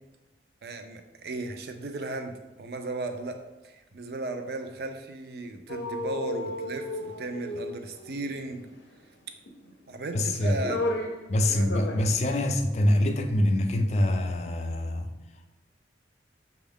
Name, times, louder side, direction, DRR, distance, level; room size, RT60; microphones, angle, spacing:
voice 1, 0.6-2.3 2.6-3.4 3.6-8.6 9.9-10.8 11.5-11.7, right 3 dB, 60° right, 0.5 m, -35 dB
sound 1, 5.7-8.2 9.5-10.0 10.4-11.2 11.6-12.1 12.4-12.5, left 2 dB, 90° left, 0.6 m, -33 dB
voice 2, 10.1-10.6 11.3-15.1, left 1 dB, 40° left, 0.4 m, -25 dB
6.1 x 2.4 x 3.5 m
head